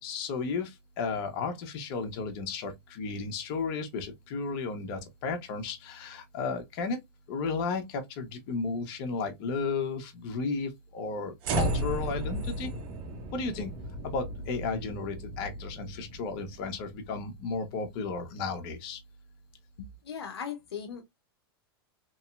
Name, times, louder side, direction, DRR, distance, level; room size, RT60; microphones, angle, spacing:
voice 1, 0.0-7.0 7.3-12.7 13.3-13.7 14.0-19.0, left 4 dB, 55° left, 1.1 m, -34 dB
sound 1, 11.4-17.7, right 1 dB, 40° right, 0.9 m, -35 dB
voice 2, 19.8-21.0, left 7 dB, 85° left, 0.7 m, -38 dB
3.1 x 2.7 x 2.3 m
hypercardioid pair, 110°, 13 cm